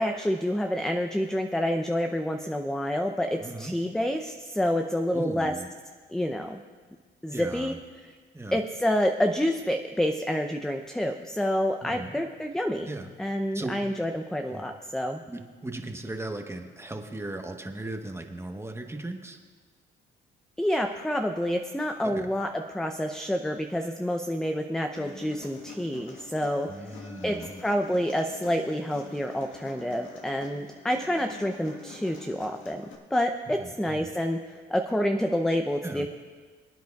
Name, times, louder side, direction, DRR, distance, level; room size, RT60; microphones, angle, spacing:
voice 1, 0.0-5.5 6.1-6.6 7.2-7.7 8.5-12.9 13.2-15.2 20.6-27.0 27.2-32.8 33.1-36.1, equal, 5° left, 5 dB, 0.5 m, -28 dB
voice 2, 3.4-3.7 5.1-5.7 7.3-7.8 8.3-8.6 11.8-12.3 12.9-13.1 13.5-13.7 14.5-14.7 15.3-19.4 22.0-22.3 26.7-27.6 33.5-34.1 35.8-36.1, right 2 dB, 15° right, 4 dB, 1.1 m, -37 dB
Human voice, 25.0-32.9, left 4 dB, 75° left, 1.5 m, -46 dB
25.5 x 9.2 x 2.4 m, 1.5 s
cardioid pair, 90°, 20 cm